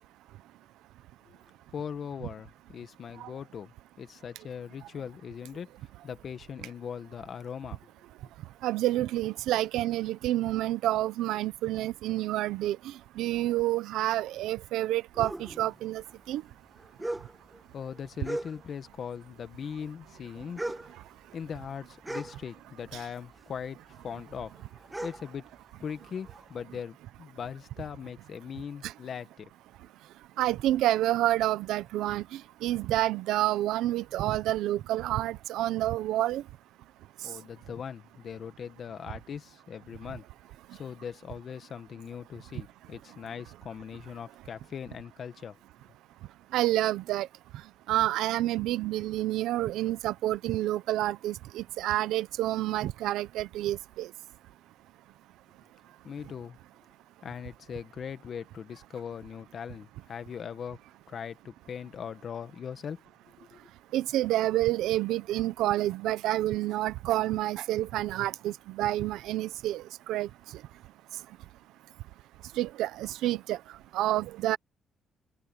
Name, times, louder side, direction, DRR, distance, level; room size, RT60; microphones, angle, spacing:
voice 1, 1.7-7.8 17.7-20.7 21.3-23.8 24.0-24.5 25.0-25.4 25.8-29.5 37.2-40.2 40.7-45.6 56.0-56.6 57.2-60.8 61.1-63.0 63.4-63.6, left 7 dB, 55° left, 1.7 m, -40 dB
voice 2, 8.6-12.8 13.2-16.0 16.3-16.4 30.4-32.2 32.6-36.4 46.5-47.3 47.9-54.1 63.9-69.8 70.1-70.3 72.6-73.6 73.9-74.6, right 14 dB, 90° right, 0.8 m, -28 dB
sound 1, 15.1-19.0 19.2-23.0 23.3-26.5, right 1 dB, 10° right, 1.8 m, -40 dB
cardioid pair, 90°, 0 cm